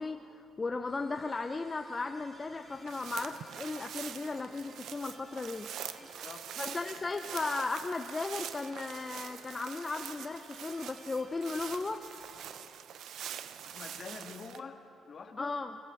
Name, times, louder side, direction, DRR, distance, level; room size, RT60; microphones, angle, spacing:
voice 1, 0.0-5.7 6.6-12.1 15.4-15.8, left 3 dB, 25° left, 6 dB, 0.7 m, -36 dB
sound 1, 0.9-12.6, equal, 20° right, 4.1 m, -57 dB
sound 2, 2.7-14.6, right 9 dB, 75° right, 0.7 m, -44 dB
voice 2, 6.0-7.0 13.6-15.6, left 5 dB, 45° left, 5 dB, 1.7 m, -47 dB
22.0 x 15.0 x 7.8 m, 2.8 s
cardioid pair, 90°, 0 cm